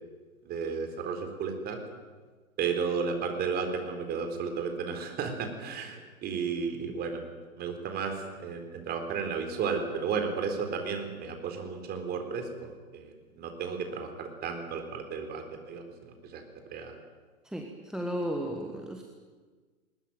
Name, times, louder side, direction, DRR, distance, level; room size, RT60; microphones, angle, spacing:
voice 1, 0.4-1.8 2.6-7.2 7.6-16.4 16.7-17.0, right 5 dB, 25° right, 5 dB, 4.0 m, -33 dB
voice 2, 17.5-19.0, equal, ahead, 3 dB, 1.6 m, -34 dB
21.0 x 20.5 x 9.3 m, 1.4 s
figure-of-eight pair, 120°, 42 cm